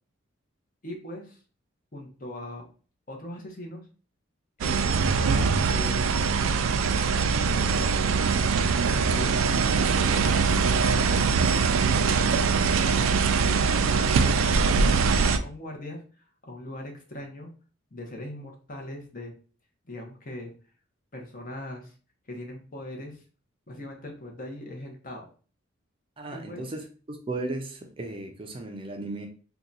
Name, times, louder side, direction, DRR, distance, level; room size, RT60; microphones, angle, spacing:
voice 1, 0.8-1.4 1.9-2.7 3.1-3.9 4.6-6.1 7.2-8.0 9.1-11.4 12.2-12.5 13.8-17.5 17.9-19.3 19.8-20.5 21.1-21.9 22.3-23.2 23.7-25.3 26.3-26.8, left 1 dB, 45° left, 0.8 m, -40 dB
sound 1, 4.6-15.4, right 5 dB, 90° right, 0.3 m, -23 dB
voice 2, 26.2-29.3, right 2 dB, 25° right, 0.4 m, -35 dB
2.8 x 2.2 x 3.8 m
head